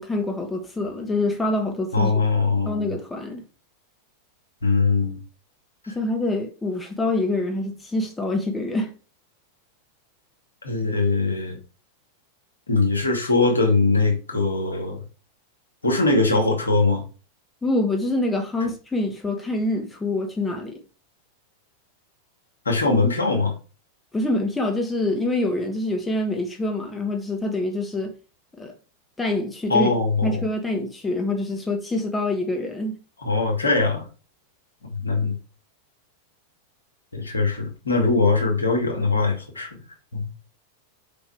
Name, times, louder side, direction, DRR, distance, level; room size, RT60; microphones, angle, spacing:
voice 1, 0.0-2.1 2.7-3.4 5.9-8.9 17.6-20.8 24.1-28.1 28.6-28.7 29.2-29.9 30.2-33.0, left 2 dB, 10° left, 1.4 m, -25 dB
voice 2, 1.9-2.9 4.6-5.2 5.8-5.9 10.6-11.6 12.7-15.0 15.8-17.0 22.7-23.5 29.7-30.4 33.2-34.0 34.9-35.4 37.1-39.7 40.1-40.5, left 3 dB, 75° left, 2.4 m, -21 dB
5.4 x 5.2 x 4.8 m
figure-of-eight pair, 90°, 0 cm